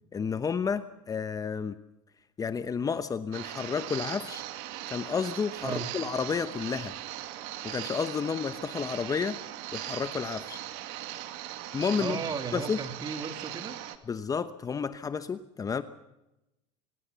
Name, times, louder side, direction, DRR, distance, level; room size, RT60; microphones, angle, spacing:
voice 1, 0.1-1.8 2.4-4.4 4.9-7.0 7.6-9.4 9.7-10.6 11.7-12.2 12.5-12.8 14.1-15.8, left 6 dB, 25° left, 12 dB, 1.0 m, -31 dB
sound 1, 3.3-14.0, right 13 dB, 70° right, 2.2 m, -39 dB
voice 2, 12.0-13.8, right 5 dB, 25° right, 7 dB, 2.6 m, -35 dB
25.0 x 19.5 x 6.9 m, 0.93 s
supercardioid pair, 115°, 15 cm